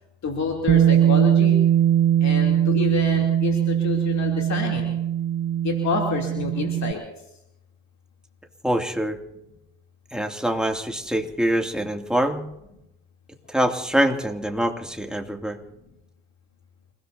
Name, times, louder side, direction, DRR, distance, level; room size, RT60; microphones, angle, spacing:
voice 1, 0.2-1.6 2.2-4.9 5.6-7.0, left 4 dB, 55° left, 1 dB, 3.1 m, -28 dB
Bass guitar, 0.7-6.9, right 10 dB, 40° right, 0.7 m, -20 dB
voice 2, 8.6-9.2 10.1-12.4 13.5-15.6, right 1 dB, ahead, 3 dB, 2.5 m, -24 dB
28.5 x 17.0 x 2.8 m, 0.87 s
hypercardioid pair, 50°, 34 cm